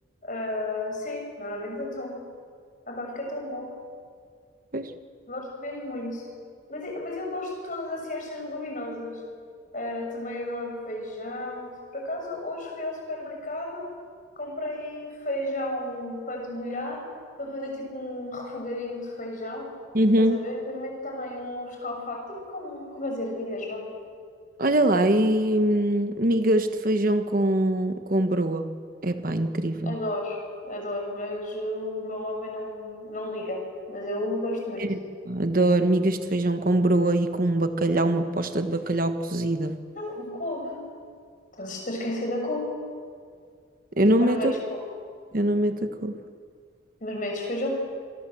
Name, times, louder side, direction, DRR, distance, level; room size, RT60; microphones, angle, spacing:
voice 1, 0.2-2.2 2.9-3.7 5.3-6.3 6.7-9.2 9.7-13.9 14.4-17.1 17.4-19.7 20.2-23.9 29.8-30.4 30.6-34.9 39.9-40.8 41.6-42.7 44.2-44.8 47.0-47.7, left 1 dB, 40° left, 1 dB, 6.6 m, -33 dB
voice 2, 19.9-20.4 24.6-28.7 29.0-29.9 34.8-35.0 35.3-39.8 44.0-44.5 45.3-46.1, right 1 dB, 45° right, 8 dB, 1.2 m, -23 dB
27.5 x 23.5 x 7.8 m, 2.1 s
head